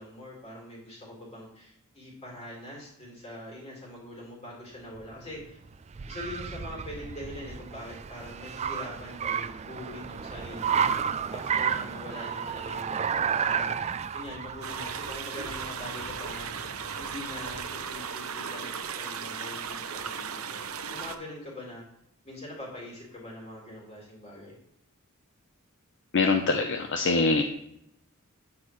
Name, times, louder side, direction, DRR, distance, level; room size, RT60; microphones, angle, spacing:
voice 1, 0.0-5.6 6.1-10.9 11.3-13.0 13.4-13.8 14.1-16.6 17.0-21.8 22.2-24.6, left 1 dB, 30° left, -3 dB, 4.1 m, -43 dB
Car, 4.9-17.9, right 7 dB, 30° right, 0.3 m, -32 dB
sound 1, 14.6-21.1, right 6 dB, 75° right, 0.8 m, -36 dB
voice 2, 26.1-27.4, left 3 dB, 60° left, 4 dB, 0.7 m, -24 dB
9.8 x 8.7 x 3.1 m, 0.76 s
head